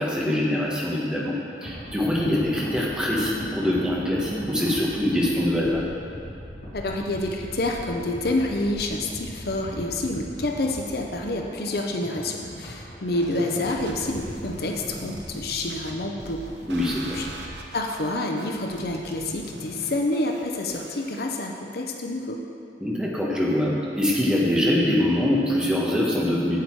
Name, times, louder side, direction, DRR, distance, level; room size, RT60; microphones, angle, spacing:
voice 1, 0.0-5.8 16.7-17.2 22.8-26.6, left 1 dB, 5° right, -4 dB, 1.2 m, -24 dB
sound 1, 1.6-17.6, equal, 75° left, 2.5 m, -40 dB
voice 2, 6.7-16.5 17.1-17.3 17.7-22.4, left 2 dB, 60° left, 2 dB, 0.7 m, -28 dB
sound 2, 13.2-21.2, right 1 dB, 75° right, 0.9 m, -41 dB
8.3 x 8.0 x 4.7 m, 2.5 s
head